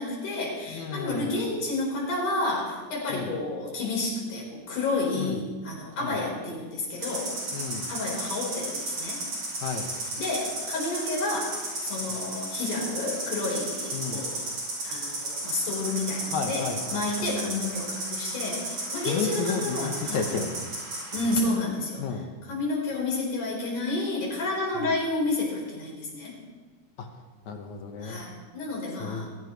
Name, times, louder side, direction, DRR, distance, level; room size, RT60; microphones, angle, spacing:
voice 1, 0.0-7.3 7.9-9.2 10.2-14.5 14.8-20.3 21.1-26.3 28.0-29.3, left 2 dB, 85° left, -3 dB, 6.0 m, -30 dB
voice 2, 0.7-1.3 3.1-3.3 5.2-5.4 6.0-6.2 7.5-7.9 9.6-9.9 13.9-14.2 16.3-17.0 19.1-20.5 22.0-22.3 27.0-27.1 27.5-28.2 29.0-29.3, left 5 dB, 70° left, 4 dB, 2.6 m, -32 dB
sound 1, 7.0-21.4, right 2 dB, 55° right, 6.5 m, -34 dB
22.0 x 16.5 x 3.2 m, 1.4 s
omnidirectional pair, 3.6 m